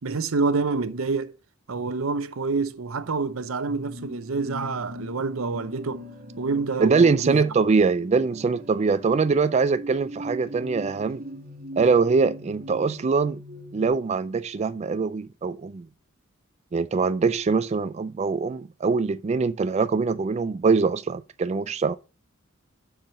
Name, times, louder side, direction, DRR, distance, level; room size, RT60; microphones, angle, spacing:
voice 1, 0.0-1.3 1.7-6.1 6.4-7.4, right 4 dB, 85° right, 0.7 m, -27 dB
sound 1, 3.7-13.9, equal, 50° right, 2.3 m, -40 dB
voice 2, 6.8-11.2 11.8-13.4 13.7-15.9 16.7-22.0, right 4 dB, 35° right, 0.3 m, -23 dB
7.4 x 4.8 x 6.3 m
head